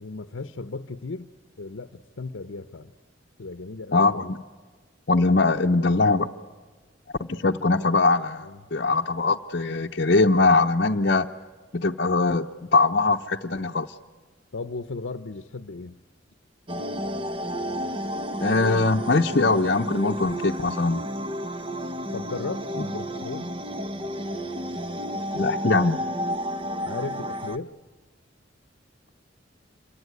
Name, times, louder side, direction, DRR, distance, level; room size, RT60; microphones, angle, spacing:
voice 1, 0.0-1.3 1.6-2.9 3.4-4.1 7.7-7.9 8.4-8.6 14.5-16.0 22.1-23.5 26.8-27.7, left 3 dB, 80° left, 0.8 m, -36 dB
voice 2, 3.9-4.4 5.1-6.3 7.2-11.3 11.7-13.9 18.4-21.0 25.3-26.0, left 3 dB, 50° left, 0.7 m, -22 dB
sound 1, 16.7-27.6, equal, 25° right, 0.8 m, -31 dB
27.0 x 23.0 x 9.5 m
head